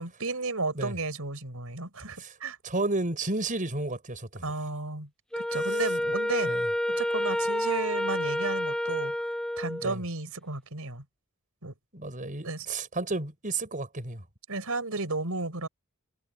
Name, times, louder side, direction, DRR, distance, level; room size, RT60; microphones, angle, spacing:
voice 1, 0.0-2.6 4.4-5.1 5.4-6.5 6.9-9.1 9.6-11.0 11.6-11.7 12.4-12.7 14.5-15.7, right 3 dB, 90° right, 4.6 m, -33 dB
voice 2, 2.6-4.4 6.5-6.6 9.8-10.0 11.9-14.2, right 2 dB, 40° right, 6.1 m, -32 dB
Wind instrument woodwind instrument, 5.3-10.0, left 1 dB, 5° left, 0.5 m, -29 dB
head